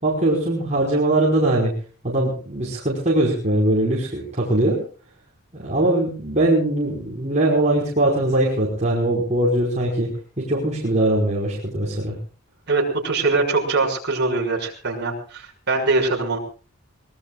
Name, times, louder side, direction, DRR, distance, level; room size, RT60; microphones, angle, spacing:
voice 1, 0.0-1.7 2.0-4.8 5.5-10.1 10.4-12.1, right 1 dB, 30° right, -3 dB, 5.3 m, -21 dB
voice 2, 12.7-16.4, right 3 dB, 50° right, 1 dB, 6.2 m, -22 dB
24.5 x 21.5 x 2.5 m, 0.39 s
head